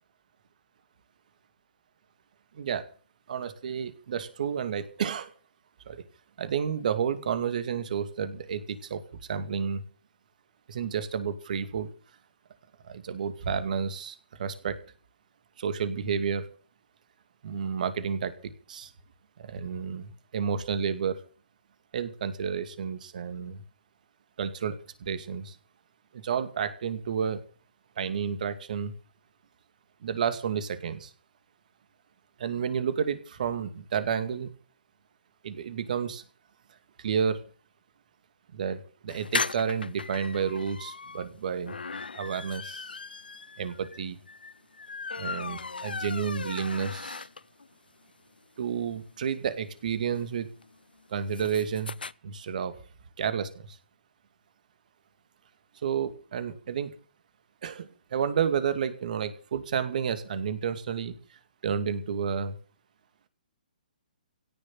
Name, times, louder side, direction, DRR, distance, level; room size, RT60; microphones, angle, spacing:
voice 1, 3.3-5.3 5.9-6.0 6.4-9.8 10.7-11.9 12.8-14.8 15.6-16.5 17.4-18.9 19.4-21.2 21.9-23.6 24.4-25.6 26.1-27.4 28.0-28.9 30.0-31.1 32.4-34.5 35.4-36.2 37.0-37.4 38.5-41.8 42.1-42.9 43.6-44.2 45.2-47.3 48.6-50.5 51.1-51.9 52.2-52.8 53.2-53.8 55.7-56.9 57.6-62.6, right 7 dB, 55° right, 11 dB, 2.5 m, -31 dB
sound 1, 39.1-47.7 48.1-48.2 48.4-48.5 48.7-52.1, left 4 dB, 85° left, 0.6 m, -38 dB
17.0 x 6.8 x 9.3 m, 0.40 s
hypercardioid pair, 135°, 5 cm